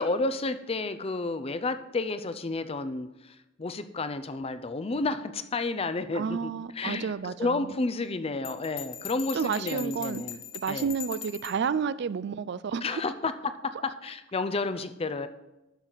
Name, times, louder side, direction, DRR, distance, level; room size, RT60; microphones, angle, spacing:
voice 1, 0.0-10.4 10.7-10.9 12.8-13.5 13.8-15.3, left 3 dB, 30° left, 11 dB, 0.5 m, -31 dB
voice 2, 6.1-7.7 9.3-10.2 10.5-13.0, right 6 dB, 60° right, 17 dB, 0.4 m, -31 dB
Bell, 8.4-11.6, left 9 dB, 90° left, 1.2 m, -40 dB
11.5 x 6.3 x 4.0 m, 0.99 s
head